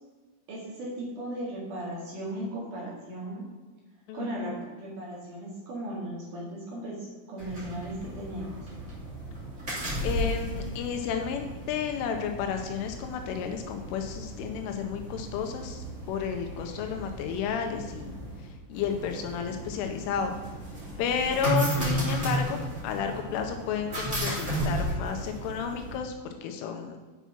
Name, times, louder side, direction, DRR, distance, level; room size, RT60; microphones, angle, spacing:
voice 1, 0.5-3.4 4.1-8.5, right 1 dB, 55° right, -4 dB, 2.5 m, -37 dB
voice 2, 4.1-4.5 10.0-18.1 18.7-20.3 21.0-26.1 26.4-27.0, left 7 dB, 80° left, 5 dB, 3.0 m, -32 dB
sound 1, 7.4-26.0, right 1 dB, 30° right, 1.4 m, -34 dB
8.1 x 6.0 x 5.8 m, 1.3 s
omnidirectional pair, 6.0 m